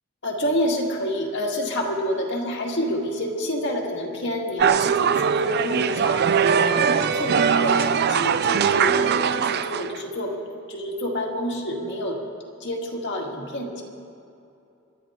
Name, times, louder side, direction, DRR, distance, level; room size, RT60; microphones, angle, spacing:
voice 1, 0.2-10.4 10.7-12.2 12.6-13.8, equal, 55° left, 0 dB, 2.1 m, -28 dB
sound 1, 4.6-10.0, right 7 dB, 50° right, 0.5 m, -21 dB
28.5 x 12.0 x 3.7 m, 2.7 s
head